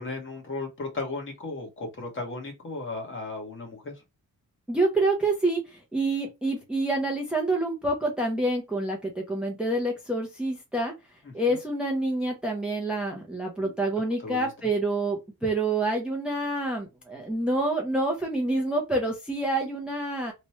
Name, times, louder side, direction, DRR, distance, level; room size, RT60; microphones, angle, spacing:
voice 1, 0.0-4.0 11.2-11.6 13.6-13.7 14.2-14.5, left 3 dB, 35° left, 1.2 m, -35 dB
voice 2, 4.7-10.9 11.3-20.3, right 2 dB, 5° right, 0.6 m, -27 dB
3.0 x 2.2 x 4.1 m
wide cardioid pair, 165°, 35 cm